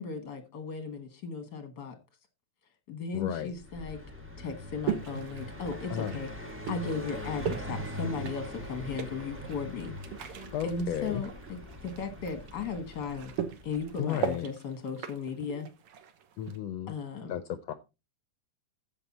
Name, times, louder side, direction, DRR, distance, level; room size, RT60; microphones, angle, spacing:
voice 1, 0.0-1.9 2.9-4.0 4.4-6.3 6.7-10.0 10.3-13.3 13.6-15.7 16.9-17.3, left 5 dB, 50° left, 8 dB, 1.4 m, -36 dB
voice 2, 3.1-3.5 5.9-6.2 10.5-11.2 14.0-14.5 16.4-16.9 17.3-17.7, left 10 dB, 75° left, 13 dB, 1.5 m, -33 dB
Car passing by, 3.5-14.1, left 1 dB, 10° right, 0.5 m, -42 dB
sound 1, 4.9-16.6, right 8 dB, 60° right, 1.8 m, -39 dB
14.5 x 6.0 x 4.0 m, 0.27 s
omnidirectional pair, 3.5 m